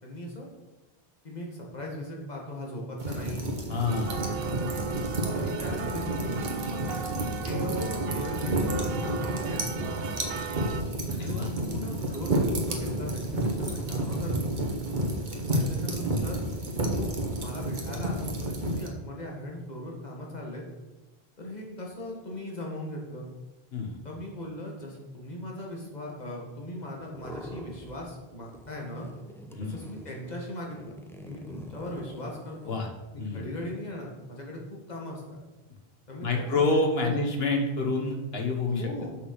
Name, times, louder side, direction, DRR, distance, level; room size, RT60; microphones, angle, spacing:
voice 1, 0.0-0.5 1.2-3.5 4.1-4.7 5.4-7.1 7.4-9.7 11.2-14.5 15.5-16.4 16.8-17.1 17.4-20.6 21.4-23.3 24.0-29.1 29.7-31.0 31.2-32.8 33.1-34.6 34.9-35.4 36.1-37.2 38.8-39.1, left 1 dB, 45° left, -1 dB, 1.9 m, -39 dB
sound 1, 3.0-18.9, right 1 dB, 50° right, 1.4 m, -30 dB
voice 2, 3.7-4.2 5.3-5.5 11.1-12.0 15.6-15.7 23.7-24.0 29.5-29.8 32.7-32.9 33.2-33.4 36.2-38.9, left 3 dB, 75° left, 2 dB, 1.6 m, -28 dB
sound 2, 3.9-10.8, right 6 dB, 75° right, 0.9 m, -36 dB
sound 3, 27.0-28.2 28.5-32.8, left 1 dB, 5° left, 0.8 m, -46 dB
6.6 x 6.4 x 5.7 m, 1.1 s
omnidirectional pair, 1.0 m